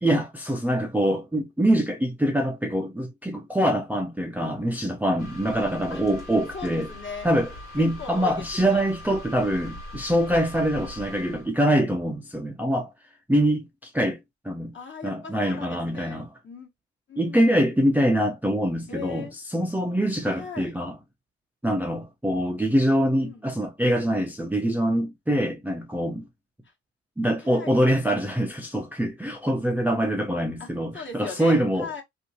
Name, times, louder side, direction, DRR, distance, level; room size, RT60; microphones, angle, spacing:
voice 1, 0.0-6.9 7.2-7.5 7.7-12.9 13.3-14.2 14.4-14.7 15.0-16.3 17.2-20.9 21.6-26.3 27.2-31.9, right 1 dB, 5° right, 0.5 m, -24 dB
sound 1, 5.2-11.5, left 1 dB, 75° left, 1.5 m, -41 dB
voice 2, 6.5-7.3 7.8-8.9 14.7-16.7 17.1-17.6 18.9-19.3 20.2-20.8 22.9-23.4 26.6-26.7 27.4-27.8 30.6-30.7 30.9-32.0, left 5 dB, 40° left, 1.3 m, -39 dB
2.8 x 2.5 x 2.7 m
supercardioid pair, 65°, 31 cm